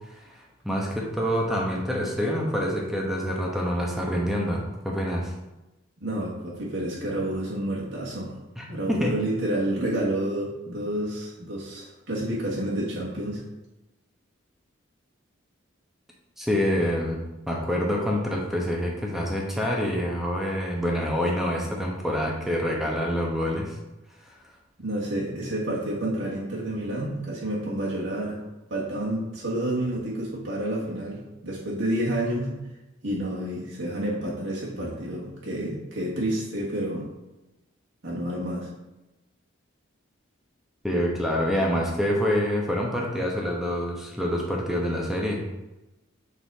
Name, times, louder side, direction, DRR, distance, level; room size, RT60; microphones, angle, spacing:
voice 1, 0.2-5.3 8.6-9.2 16.4-23.8 40.8-45.4, equal, ahead, -2 dB, 1.0 m, -26 dB
voice 2, 6.0-8.3 8.7-13.4 24.8-28.4 28.7-32.6 33.0-37.1 38.0-38.7, right 1 dB, 65° right, -5 dB, 1.5 m, -29 dB
6.8 x 4.0 x 4.0 m, 1.0 s
head